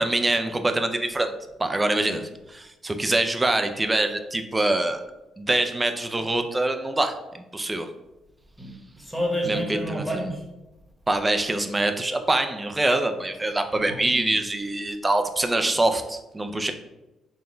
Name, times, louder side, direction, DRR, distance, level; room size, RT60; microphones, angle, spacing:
voice 1, 0.0-1.3 1.6-5.0 5.4-7.9 9.5-9.6 9.9-10.0 11.1-16.7, right 2 dB, 15° right, 7 dB, 0.4 m, -24 dB
voice 2, 8.6-10.4 13.7-14.3, equal, ahead, 0 dB, 1.0 m, -30 dB
3.9 x 2.2 x 3.8 m, 1.0 s
cardioid pair, 90°, 0 cm